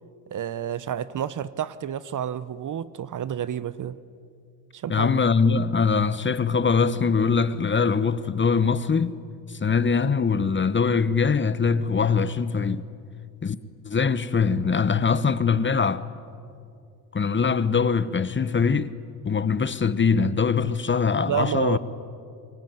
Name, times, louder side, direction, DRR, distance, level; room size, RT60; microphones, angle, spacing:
voice 1, 0.3-4.0 4.7-5.1 21.3-21.8, right 9 dB, 40° right, 1.0 m, -29 dB
voice 2, 4.9-9.2 9.6-12.8 13.4-13.6 13.8-16.0 17.1-18.9 19.2-21.8, left 5 dB, 25° left, 1.3 m, -22 dB
26.5 x 23.5 x 9.3 m
hypercardioid pair, 70°, 46 cm